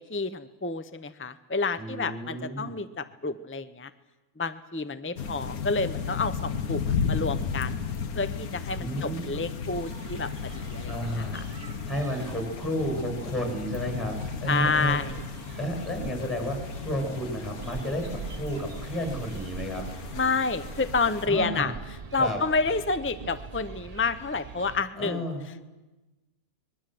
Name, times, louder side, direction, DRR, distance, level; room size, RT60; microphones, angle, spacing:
voice 1, 0.0-3.9 4.4-7.9 8.2-11.7 14.5-15.2 20.2-21.7 22.1-25.2, left 4 dB, 20° left, 12 dB, 0.3 m, -29 dB
voice 2, 1.8-2.7 8.7-9.4 10.9-11.4 11.9-15.0 15.6-16.6 16.8-19.8 21.3-21.7 22.1-22.4 25.0-25.4, equal, ahead, 2 dB, 6.7 m, -31 dB
sound 1, 5.2-21.3, left 6 dB, 90° left, 1.7 m, -35 dB
sound 2, 9.7-24.8, right 5 dB, 35° right, 0.7 m, -43 dB
24.5 x 21.5 x 7.7 m, 1.1 s
omnidirectional pair, 1.5 m